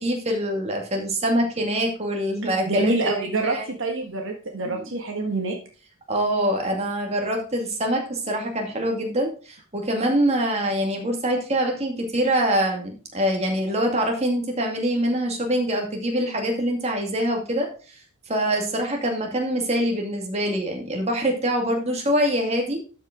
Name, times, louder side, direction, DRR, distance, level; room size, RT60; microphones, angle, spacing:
voice 1, 0.0-3.7 4.7-4.9 6.1-17.7 18.3-22.8, equal, 30° right, 1 dB, 2.2 m, -24 dB
voice 2, 2.7-5.5, right 3 dB, 65° right, 2 dB, 1.6 m, -26 dB
12.5 x 5.4 x 3.7 m, 0.37 s
head